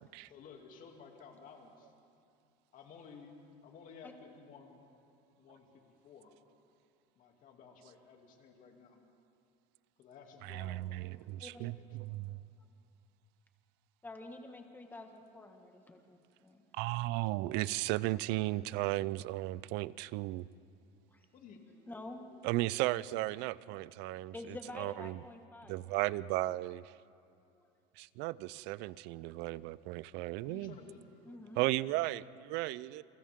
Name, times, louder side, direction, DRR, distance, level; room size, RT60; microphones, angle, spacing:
voice 1, 0.3-1.9 2.7-3.4 3.6-4.8 5.4-6.3 7.2-9.0 10.0-11.1 11.5-12.4 21.3-21.6 30.4-31.6, left 5 dB, 45° left, 2 dB, 2.7 m, -55 dB
voice 2, 10.4-12.4 16.7-20.4 22.4-25.2 25.7-26.9 28.0-30.7 31.6-33.0, right 18 dB, 65° right, 19 dB, 0.5 m, -35 dB
voice 3, 14.0-16.6 21.1-21.3 21.9-22.5 24.3-25.8 27.6-27.7 31.3-31.6, left 2 dB, 10° left, 4 dB, 1.6 m, -48 dB
29.5 x 24.0 x 3.7 m, 2.5 s
cardioid pair, 140°, 19 cm